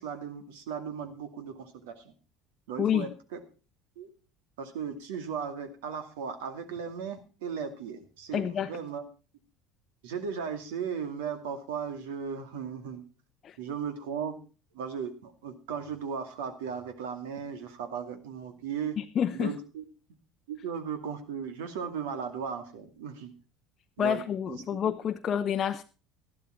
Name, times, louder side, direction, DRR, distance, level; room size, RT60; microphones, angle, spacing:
voice 1, 0.0-2.1 2.7-3.4 4.0-4.1 4.6-9.1 10.0-13.0 13.6-14.4 14.7-19.0 19.3-19.8 20.5-23.3 24.0-25.0, right 7 dB, 75° right, 2.3 m, -36 dB
voice 2, 2.8-3.1 8.3-8.7 13.4-13.5 19.2-19.5 24.0-25.8, left 9 dB, 40° left, 0.8 m, -28 dB
13.5 x 12.0 x 4.5 m
hypercardioid pair, 70°, 0 cm